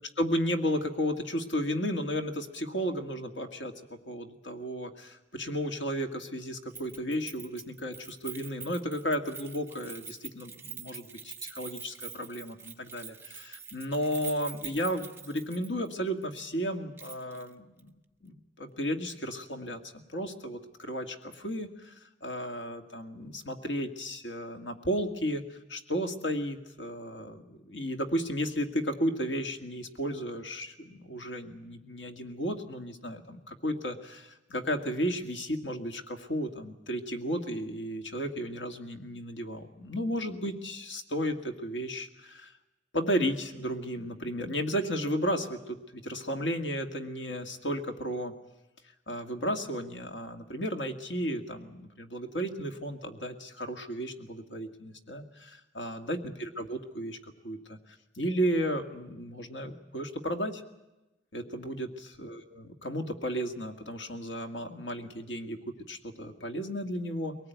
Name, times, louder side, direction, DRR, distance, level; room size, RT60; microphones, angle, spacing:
voice 1, 0.2-17.9 18.2-21.9 22.2-42.5 42.9-48.3 49.1-57.8 58.2-60.6 61.3-67.4, equal, 90° left, 5 dB, 2.1 m, -34 dB
Keys jangling, 6.7-15.9 16.2-16.3 17.0-17.5 17.8-17.9, right 6 dB, 15° right, 1.2 m, -45 dB
22.5 x 19.0 x 9.3 m, 1.0 s
head